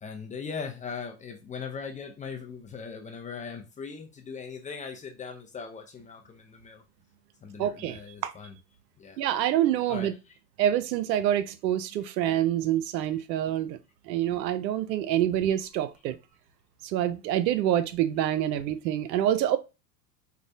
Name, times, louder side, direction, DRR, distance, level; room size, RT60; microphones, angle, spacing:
voice 1, 0.0-6.8 7.4-8.6 9.0-9.2 9.9-10.2, left 5 dB, 15° left, 0.5 m, -39 dB
voice 2, 7.6-8.3 9.2-10.1 10.6-13.8 14.1-16.2 16.8-19.6, right 11 dB, 80° right, 0.6 m, -26 dB
4.6 x 2.1 x 2.7 m
hypercardioid pair, 90°, 50 cm